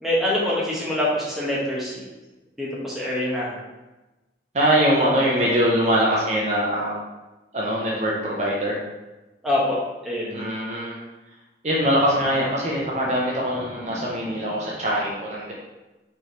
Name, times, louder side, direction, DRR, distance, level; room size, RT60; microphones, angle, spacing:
voice 1, 0.0-2.0 2.6-3.6 9.4-10.5, left 1 dB, ahead, -6 dB, 0.9 m, -25 dB
voice 2, 4.5-6.9 7.5-8.8 10.3-11.0 11.6-15.5, equal, 40° right, -4 dB, 0.6 m, -22 dB
4.5 x 3.2 x 2.8 m, 1.1 s
head